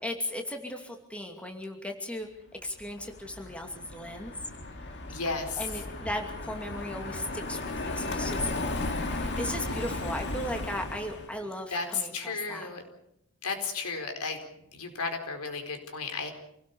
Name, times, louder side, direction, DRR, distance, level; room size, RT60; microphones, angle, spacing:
voice 1, 0.0-2.3 2.6-4.3 5.6-7.6 7.9-12.7, left 1 dB, 5° left, 3 dB, 2.5 m, -36 dB
Car passing by, 2.8-11.3, left 2 dB, 50° left, 2.3 m, -35 dB
voice 2, 5.1-5.7 11.7-12.8 13.4-14.4 14.7-16.3, left 4 dB, 85° left, 5 dB, 4.4 m, -33 dB
28.0 x 17.5 x 7.0 m, 0.79 s
head